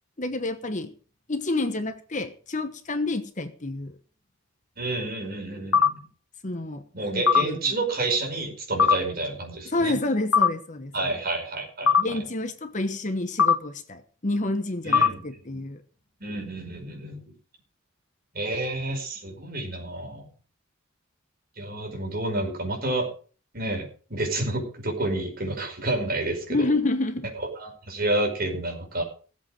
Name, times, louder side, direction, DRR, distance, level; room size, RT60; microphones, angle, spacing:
voice 1, 0.2-0.9 1.3-4.0 6.4-6.8 7.1-7.8 9.6-11.1 12.0-15.8 26.5-27.3, left 2 dB, 35° left, 1.1 m, -29 dB
voice 2, 4.8-6.0 6.9-10.0 10.9-11.9 14.8-15.2 15.5-15.7 16.2-17.2 18.3-20.3 21.6-23.1 23.5-26.7 27.6-29.0, right 2 dB, 45° right, 5.3 m, -29 dB
sound 1, 5.7-5.9 7.3-7.4 8.8-9.0 10.3-10.5 11.9-12.0 13.4-13.6 14.9-15.1, left 6 dB, 75° left, 1.1 m, -18 dB
17.0 x 7.9 x 6.5 m
head